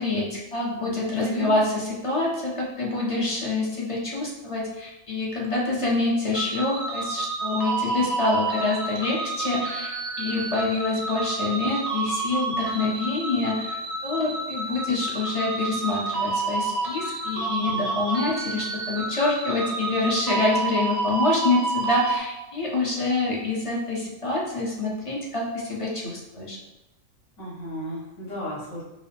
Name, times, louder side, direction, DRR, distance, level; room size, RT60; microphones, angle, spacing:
voice 1, 0.0-13.8 14.0-26.6, left 2 dB, 35° left, -3 dB, 0.6 m, -26 dB
voice 2, 1.2-1.5 20.0-20.2 27.4-28.8, equal, 65° left, -5 dB, 1.5 m, -33 dB
sound 1, 6.3-22.2, right 3 dB, 40° right, 0.5 m, -29 dB
4.7 x 2.0 x 3.4 m, 0.97 s
omnidirectional pair, 1.4 m